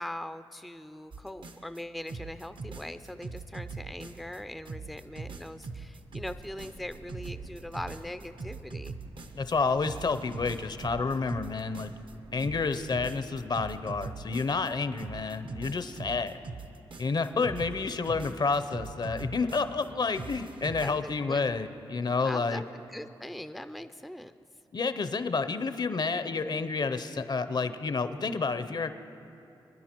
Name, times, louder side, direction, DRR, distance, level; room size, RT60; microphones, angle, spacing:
voice 1, 0.0-9.0 20.8-21.4 22.2-24.3, left 1 dB, ahead, 10 dB, 0.4 m, -41 dB
sound 1, 1.1-1.8 2.1-4.4 4.6-9.5 9.8-12.1 12.4-14.7 15.0-19.9 20.1-21.0, right 4 dB, 60° right, 0.7 m, -41 dB
sound 2, 4.8-14.2, right 2 dB, 80° right, 2.4 m, -53 dB
voice 2, 9.3-11.9 12.3-16.4 17.0-22.6 24.7-28.9, left 4 dB, 50° left, 11 dB, 0.6 m, -30 dB
24.0 x 10.0 x 3.0 m, 2.8 s
cardioid pair, 50°, 10 cm